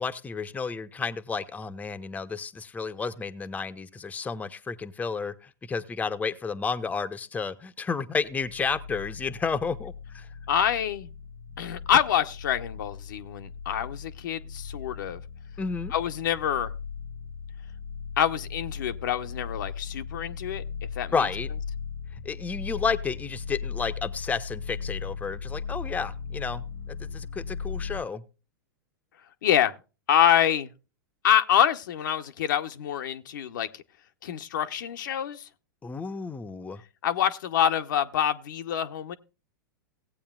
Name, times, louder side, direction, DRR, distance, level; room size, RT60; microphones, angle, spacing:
voice 1, 0.0-10.3 15.6-15.9 21.1-21.5 22.2-28.2 35.8-36.8, left 5 dB, 15° left, 0.7 m, -31 dB
sound 1, 8.3-28.0, left 6 dB, 90° left, 1.4 m, -38 dB
voice 2, 10.5-11.1 11.6-15.2 15.9-16.7 18.2-20.6 21.0-21.1 29.4-29.7 30.1-30.7 31.2-33.8 34.2-35.5 37.0-39.2, left 10 dB, 70° left, 0.8 m, -26 dB
17.5 x 8.5 x 2.3 m
hypercardioid pair, 100°, 11 cm